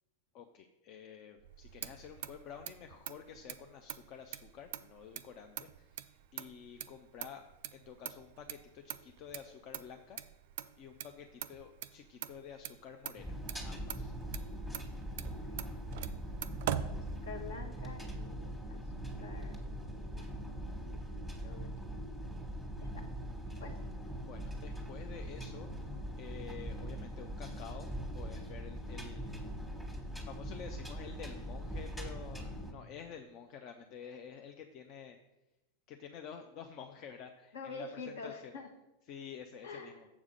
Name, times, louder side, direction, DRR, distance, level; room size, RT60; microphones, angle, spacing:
voice 1, 0.3-7.5 7.7-10.2 10.8-14.1 24.2-25.9 26.2-27.9 28.1-29.4 30.3-35.2 35.9-38.6 39.1-40.1, left 7 dB, 40° left, 6 dB, 0.5 m, -50 dB
Motor vehicle (road), 1.4-17.7, right 11 dB, 50° right, 0.4 m, -44 dB
sound 1, 13.2-32.7, right 1 dB, 5° left, 1.4 m, -42 dB
voice 2, 17.2-18.8 19.2-20.3 21.4-21.7 22.8-23.1 23.6-23.8 37.5-38.7 39.6-40.0, left 4 dB, 60° left, 6 dB, 1.2 m, -47 dB
7.2 x 4.8 x 6.5 m, 0.96 s
figure-of-eight pair, 90°, 0 cm